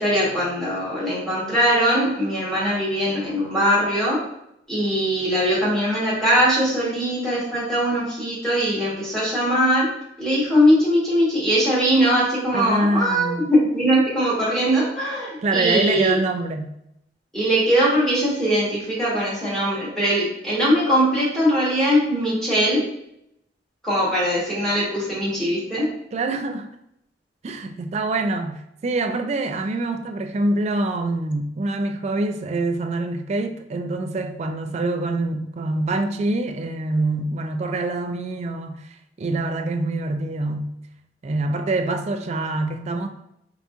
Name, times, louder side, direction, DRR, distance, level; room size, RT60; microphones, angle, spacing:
voice 1, 0.0-4.2 4.7-9.9 10.2-16.2 17.3-22.8 23.8-25.9, equal, 5° left, -7 dB, 1.4 m, -21 dB
voice 2, 12.5-13.4 15.4-16.7 26.1-26.7 27.4-38.8 39.2-40.7 41.2-43.1, right 2 dB, 35° right, 6 dB, 0.3 m, -25 dB
3.9 x 3.5 x 2.5 m, 0.79 s
head